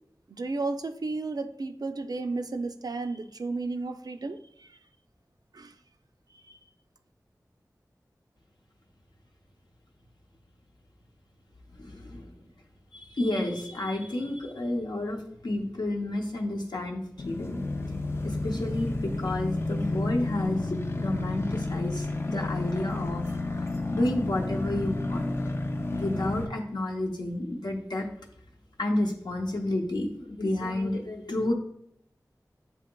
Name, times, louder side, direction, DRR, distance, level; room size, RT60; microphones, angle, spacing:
voice 1, 0.3-4.7 5.5-5.7 6.5-6.6, right 3 dB, 65° right, 8 dB, 0.4 m, -33 dB
voice 2, 11.7-12.3 12.9-17.6 18.2-23.2 23.6-25.3 25.9-28.1 28.8-31.5, left 1 dB, 85° left, 0 dB, 0.8 m, -30 dB
sound 1, 17.2-26.5, left 2 dB, 35° left, 0.4 m, -31 dB
8.2 x 2.8 x 2.2 m, 0.70 s
wide cardioid pair, 45°, 7 cm